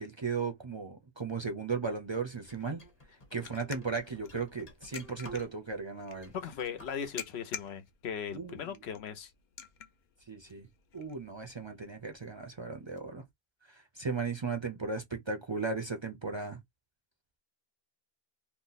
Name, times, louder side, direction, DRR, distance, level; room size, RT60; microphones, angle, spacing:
voice 1, 0.0-2.8 3.3-6.3 8.3-8.8 10.3-10.7 10.9-13.2 13.7-16.6, right 4 dB, 35° right, 0.5 m, -36 dB
sound 1, 1.7-13.0, left 8 dB, 60° left, 0.6 m, -51 dB
sound 2, 2.5-5.8 6.1-7.1, equal, 40° left, 1.0 m, -52 dB
voice 2, 6.3-9.3, left 7 dB, 90° left, 1.0 m, -38 dB
2.7 x 2.1 x 3.9 m
omnidirectional pair, 1.0 m